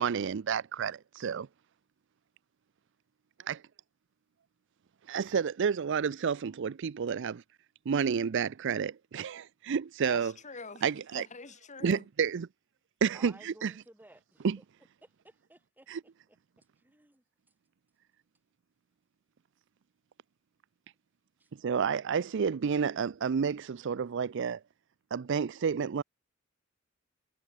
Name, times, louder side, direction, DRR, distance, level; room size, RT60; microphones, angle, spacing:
voice 1, 0.0-1.5 3.5-3.6 5.1-7.4 7.9-10.3 10.8-11.2 11.8-12.5 13.0-13.7 14.4-14.6 15.9-16.0 21.6-24.6 25.1-26.0, right 6 dB, 65° right, 0.4 m, -30 dB
voice 2, 10.0-12.1, left 4 dB, 35° left, 2.5 m, -45 dB
voice 3, 13.1-14.7 15.0-15.9 16.3-17.2 21.4-21.5, right 1 dB, 10° right, 2.7 m, -57 dB
head